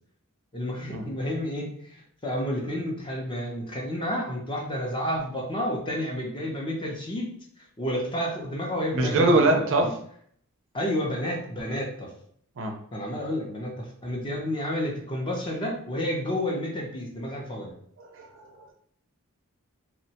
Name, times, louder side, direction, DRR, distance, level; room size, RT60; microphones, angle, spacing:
voice 1, 0.5-7.3 7.8-9.9 10.7-12.1 12.9-17.7, equal, 25° left, -1 dB, 0.6 m, -30 dB
voice 2, 8.9-9.9 12.6-12.7 18.0-18.4, right 2 dB, 60° right, 4 dB, 0.5 m, -22 dB
2.9 x 2.2 x 2.8 m, 0.62 s
head